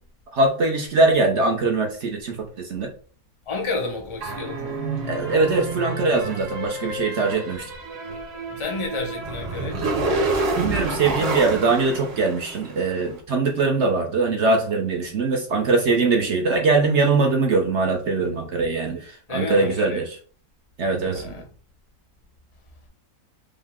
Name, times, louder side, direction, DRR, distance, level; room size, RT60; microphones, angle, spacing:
voice 1, 0.3-2.9 5.0-7.7 10.6-20.2 20.8-21.4, right 3 dB, 60° right, 0.7 m, -22 dB
voice 2, 3.5-4.8 8.5-9.9 19.3-20.0 21.1-21.4, left 3 dB, 35° left, 0.5 m, -30 dB
sound 1, 4.2-12.9, right 2 dB, 90° right, 1.7 m, -28 dB
5.4 x 2.0 x 3.5 m
omnidirectional pair, 1.9 m